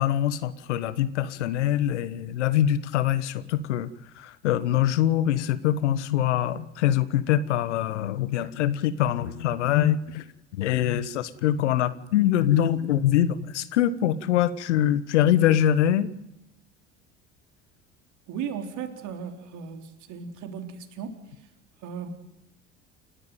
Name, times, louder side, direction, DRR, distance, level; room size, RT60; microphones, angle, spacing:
voice 1, 0.0-3.9 4.2-10.2 10.5-16.1, left 11 dB, 75° left, 15 dB, 1.4 m, -24 dB
voice 2, 18.3-21.5 21.8-22.1, right 7 dB, 55° right, 5 dB, 3.8 m, -36 dB
29.5 x 13.0 x 9.2 m, 0.87 s
figure-of-eight pair, 65°, 36 cm